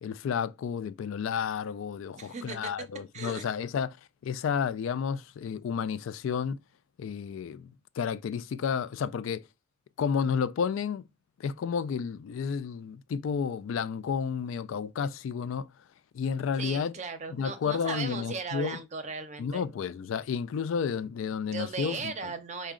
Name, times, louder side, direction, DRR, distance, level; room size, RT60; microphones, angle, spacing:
voice 1, 0.0-4.0 4.2-6.6 7.0-9.4 10.0-11.0 11.4-15.7 16.1-16.9 17.3-18.8 19.4-22.1, left 6 dB, 75° left, 0.3 m, -31 dB
voice 2, 2.2-2.7 3.1-3.5 16.6-19.6 21.5-22.7, right 4 dB, 35° right, 0.6 m, -37 dB
4.7 x 2.1 x 3.6 m
head